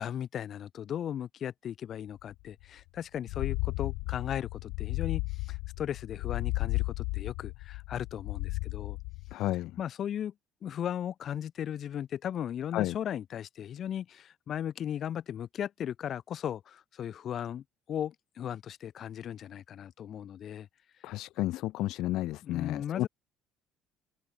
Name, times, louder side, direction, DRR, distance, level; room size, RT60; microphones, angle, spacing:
voice 1, 0.0-9.0 9.8-10.3 10.6-20.7 22.4-23.1, left 9 dB, 45° left, 5.3 m, -37 dB
sound 1, 2.6-2.7 3.2-9.3, left 27 dB, 90° left, 1.4 m, -34 dB
voice 2, 9.3-9.7 12.7-13.0 21.0-23.1, left 16 dB, 70° left, 1.1 m, -31 dB
cardioid pair, 135°, 0 cm